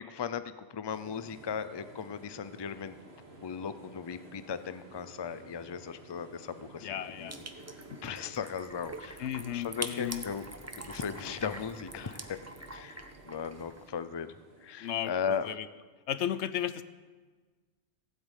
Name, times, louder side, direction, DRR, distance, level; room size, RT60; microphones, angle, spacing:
voice 1, 0.0-2.9 3.4-6.9 7.2-7.3 8.0-9.2 9.5-10.4 10.8-12.4 12.7-13.0 13.2-14.3 14.6-15.5, left 7 dB, 30° left, 12 dB, 0.5 m, -37 dB
sound 1, 0.9-15.6, right 2 dB, 65° right, 2.2 m, -53 dB
sound 2, 1.6-5.3, equal, 90° right, 2.6 m, -62 dB
voice 2, 6.8-7.4 7.9-8.0 9.2-10.3 14.8-15.7 16.1-16.8, left 10 dB, 80° left, 14 dB, 1.0 m, -34 dB
sound 3, 7.3-13.9, right 2 dB, 15° right, 0.8 m, -44 dB
16.0 x 8.6 x 8.2 m, 1.4 s
omnidirectional pair, 1.1 m